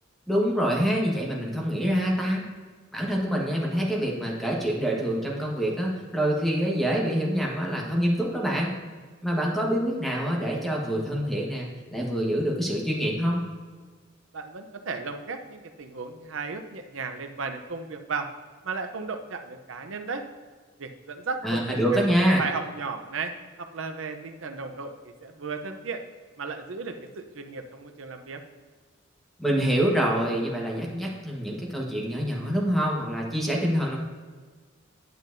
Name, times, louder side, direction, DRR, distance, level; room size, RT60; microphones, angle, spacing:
voice 1, 0.3-2.4 2.9-8.7 9.2-13.4 21.4-22.4 29.4-34.0, equal, ahead, -2 dB, 1.3 m, -26 dB
voice 2, 14.3-18.3 18.6-20.2 20.8-22.1 22.4-23.3 23.6-26.0 26.4-28.4, right 4 dB, 75° right, 6 dB, 0.7 m, -35 dB
9.4 x 7.3 x 2.7 m, 1.5 s
head